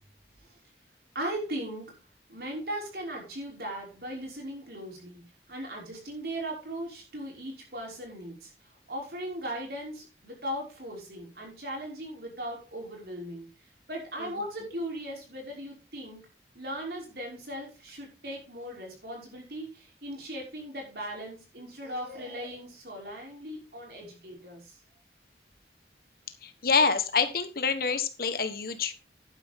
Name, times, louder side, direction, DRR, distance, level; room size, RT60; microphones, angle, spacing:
voice 1, 1.1-2.0 2.3-5.2 5.5-8.5 8.9-13.5 13.9-16.2 16.5-24.8, right 1 dB, 60° right, -1 dB, 5.6 m, -38 dB
voice 2, 26.4-28.9, left 5 dB, 55° left, 10 dB, 1.4 m, -26 dB
11.5 x 9.9 x 3.7 m, 0.29 s
head